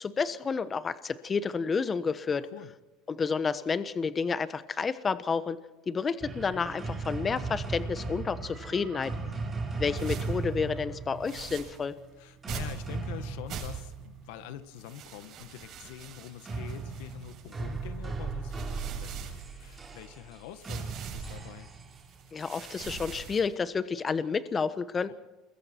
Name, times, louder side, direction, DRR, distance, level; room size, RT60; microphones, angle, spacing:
voice 1, 0.0-2.5 3.1-5.6 5.9-9.1 9.8-11.9 22.3-25.1, left 5 dB, 25° left, 13 dB, 1.2 m, -30 dB
voice 2, 2.4-2.7 9.2-9.3 12.2-21.7 25.1-25.2, left 12 dB, 80° left, 11 dB, 1.6 m, -45 dB
sound 1, 6.2-14.6 16.4-23.2, right 4 dB, 20° right, 4.3 m, -37 dB
sound 2, 9.9-10.4 11.2-11.8 12.5-12.9 13.5-14.1 14.8-17.8 18.3-19.9 20.6-21.4 21.9-23.6, right 6 dB, 50° right, 7.9 m, -44 dB
28.5 x 21.5 x 4.6 m, 1.1 s
supercardioid pair, 110°, 0 cm